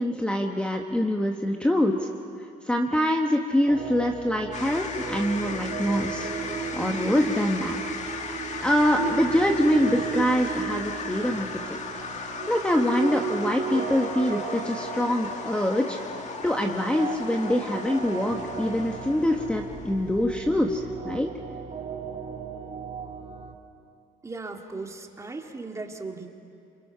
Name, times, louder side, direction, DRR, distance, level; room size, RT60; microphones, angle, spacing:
voice 1, 0.0-2.1 2.7-7.8 8.6-11.5 12.5-16.0 16.4-21.3, left 1 dB, 5° left, 2 dB, 1.3 m, -25 dB
sound 1, 3.7-23.5, right 6 dB, 40° right, 2.4 m, -35 dB
sound 2, 4.5-20.9, left 4 dB, 45° left, 2.0 m, -37 dB
voice 2, 24.2-26.3, right 3 dB, 15° right, 3 dB, 2.0 m, -37 dB
28.0 x 27.0 x 5.8 m, 2.6 s
cardioid pair, 110°, 17 cm